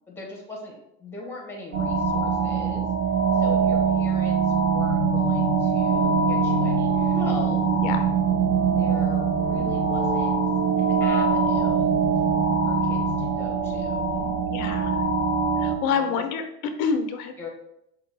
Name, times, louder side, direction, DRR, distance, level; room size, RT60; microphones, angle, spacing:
voice 1, 0.1-2.9 3.3-7.6 8.8-10.4 10.8-12.0 12.7-14.4 15.9-16.1 17.4-17.5, left 3 dB, 5° left, -1 dB, 0.8 m, -39 dB
sound 1, 1.7-15.8, right 6 dB, 30° right, 0.6 m, -23 dB
sound 2, 4.7-13.3, left 7 dB, 45° left, 0.5 m, -33 dB
Dog, 6.9-8.8 9.4-10.2 12.5-13.3, right 2 dB, 65° right, 1.1 m, -41 dB
voice 2, 14.5-15.0 15.6-16.4 16.8-17.5, left 6 dB, 85° left, 7 dB, 0.7 m, -27 dB
5.3 x 2.3 x 3.3 m, 0.78 s
supercardioid pair, 145°, 41 cm